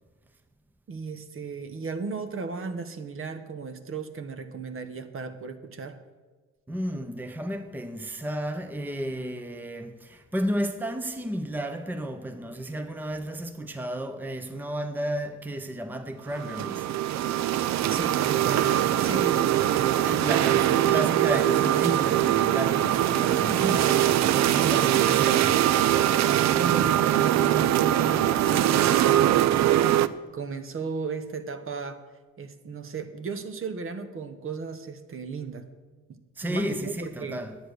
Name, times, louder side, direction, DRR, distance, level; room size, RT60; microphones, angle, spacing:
voice 1, 0.9-6.0 17.9-20.0 23.5-25.1 26.2-29.2 29.5-32.0 32.4-35.7 36.4-37.5, right 4 dB, 45° right, 1.0 m, -35 dB
voice 2, 6.7-16.9 20.0-25.7 36.4-37.6, right 1 dB, 5° right, 0.8 m, -33 dB
sound 1, 16.3-30.1, right 12 dB, 65° right, 0.5 m, -22 dB
10.0 x 8.1 x 6.4 m
cardioid pair, 90°, 30 cm